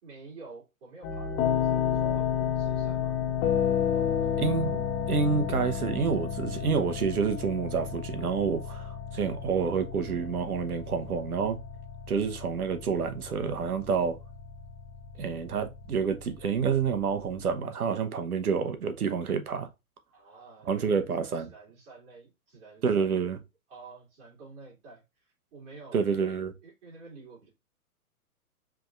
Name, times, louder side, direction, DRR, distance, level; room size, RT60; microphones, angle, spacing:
voice 1, 0.0-3.2 3.9-4.8 20.1-21.0 21.4-23.4 23.7-26.3 26.6-27.5, right 3 dB, 50° right, 3.0 m, -49 dB
sound 1, 1.0-17.5, left 8 dB, 15° left, 0.5 m, -32 dB
voice 2, 4.4-4.8 5.1-11.6 12.1-14.2 15.2-19.7 20.7-21.5 22.8-23.4 25.9-26.5, right 6 dB, 80° right, 1.1 m, -28 dB
5.0 x 3.6 x 2.5 m
hypercardioid pair, 125°, 44 cm